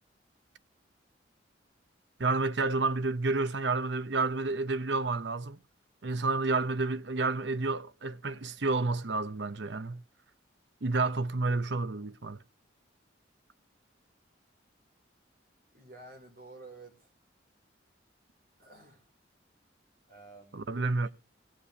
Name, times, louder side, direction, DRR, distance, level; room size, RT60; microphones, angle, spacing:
voice 1, 2.2-5.6 6.0-10.0 10.8-12.4 20.5-21.1, right 3 dB, 70° right, 0.8 m, -30 dB
voice 2, 15.7-17.1 18.6-19.0 20.1-21.1, right 2 dB, 50° right, 5.0 m, -51 dB
18.5 x 6.9 x 8.4 m
head